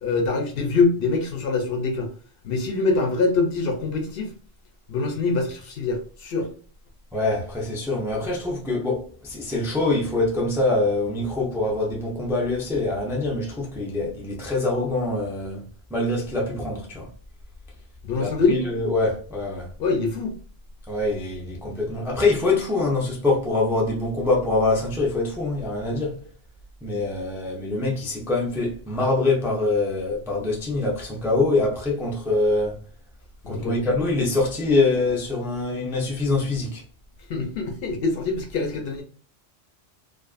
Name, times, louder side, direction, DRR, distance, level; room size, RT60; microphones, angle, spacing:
voice 1, 0.0-2.1 2.4-4.3 4.9-6.5 18.0-18.6 19.8-20.3 33.4-33.8 37.3-39.0, left 3 dB, 65° left, 0.7 m, -24 dB
voice 2, 7.1-15.6 15.9-17.1 18.1-19.7 20.9-26.3 26.8-32.8 33.5-36.8, left 2 dB, 5° right, 0.3 m, -24 dB
2.4 x 2.4 x 2.3 m
omnidirectional pair, 1.1 m